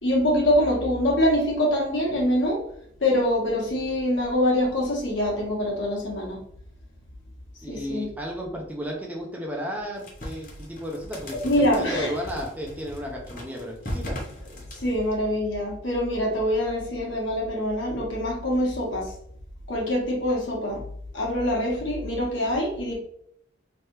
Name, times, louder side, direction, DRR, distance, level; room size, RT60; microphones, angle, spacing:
voice 1, 0.0-2.6 3.0-6.4 7.7-8.1 11.4-12.1 14.8-19.1 19.7-20.8 21.1-22.9, left 1 dB, 70° left, -2 dB, 1.3 m, -24 dB
voice 2, 7.6-14.2, equal, 10° right, -2 dB, 0.6 m, -34 dB
sound 1, 10.0-15.0, left 1 dB, 45° left, 0.9 m, -38 dB
3.4 x 3.3 x 3.0 m, 0.70 s
head